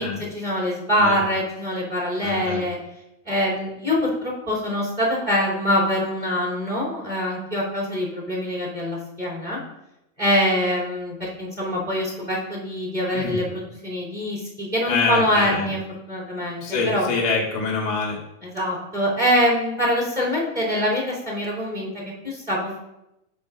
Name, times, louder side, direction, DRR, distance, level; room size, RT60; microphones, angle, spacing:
voice 1, 0.3-2.8 3.2-9.6 10.2-15.8 16.1-17.1 18.4-22.8, equal, 15° right, -4 dB, 3.2 m, -24 dB
voice 2, 2.2-2.6 13.1-13.4 14.8-15.7 16.6-18.2, left 4 dB, 40° left, -3 dB, 1.4 m, -25 dB
10.5 x 7.7 x 2.6 m, 0.88 s
omnidirectional pair, 3.8 m